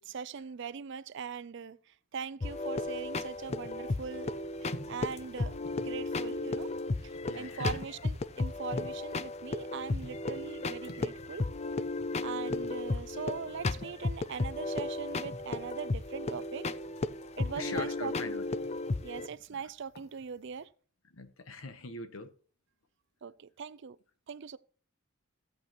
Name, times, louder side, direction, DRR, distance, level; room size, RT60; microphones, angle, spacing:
voice 1, 0.0-6.7 7.0-11.5 12.2-16.7 17.4-18.4 19.0-20.7 23.2-24.0 24.3-24.6, right 6 dB, 60° right, 0.5 m, -41 dB
sound 1, 2.4-19.3, left 2 dB, 30° left, 0.4 m, -35 dB
sound 2, 3.3-20.6, left 1 dB, 50° left, 1.3 m, -52 dB
voice 2, 7.1-7.8 17.5-18.5 19.5-19.6 21.1-22.3, left 3 dB, 80° left, 1.1 m, -42 dB
15.0 x 8.1 x 3.0 m
head